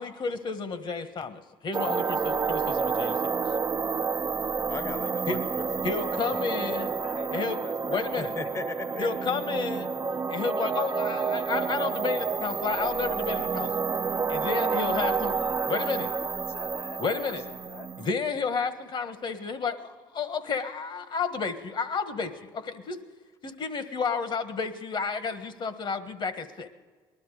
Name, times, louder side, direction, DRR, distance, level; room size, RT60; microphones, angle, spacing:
voice 1, 0.0-3.3 5.3-5.4 5.8-6.9 7.3-7.6 7.9-8.3 9.0-9.9 10.3-13.7 14.3-15.3 15.7-16.1 17.0-17.4 18.0-23.0 23.4-26.7, left 5 dB, 45° left, 11 dB, 1.4 m, -31 dB
sound 1, 1.7-18.1, right 5 dB, 30° right, 0.5 m, -29 dB
voice 2, 4.7-7.0 8.2-9.3 9.7-9.8, left 3 dB, 30° left, 10 dB, 1.0 m, -38 dB
voice 3, 7.0-8.3 14.6-17.9, left 5 dB, 65° left, 2 dB, 1.3 m, -45 dB
19.5 x 12.0 x 4.9 m, 1.5 s
supercardioid pair, 70°, 11 cm